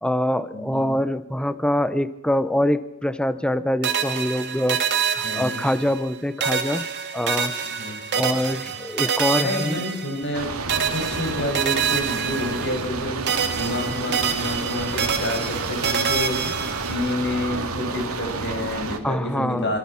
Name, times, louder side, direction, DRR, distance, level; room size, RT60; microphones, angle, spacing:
voice 1, 0.0-4.8 5.1-6.9 7.1-7.5 8.1-9.8 19.0-19.7, left 1 dB, 5° left, 13 dB, 0.8 m, -24 dB
voice 2, 0.5-0.9 5.2-5.6 7.6-8.0 8.6-8.8 9.4-16.6 16.8-19.8, left 1 dB, 55° left, 3 dB, 6.7 m, -29 dB
sound 1, 3.8-6.1 6.4-10.4 10.7-13.0 13.3-17.1, right 7 dB, 55° right, 2.3 m, -27 dB
sound 2, 10.3-19.0, right 3 dB, 85° right, 2.7 m, -30 dB
26.0 x 25.5 x 5.9 m, 0.81 s
head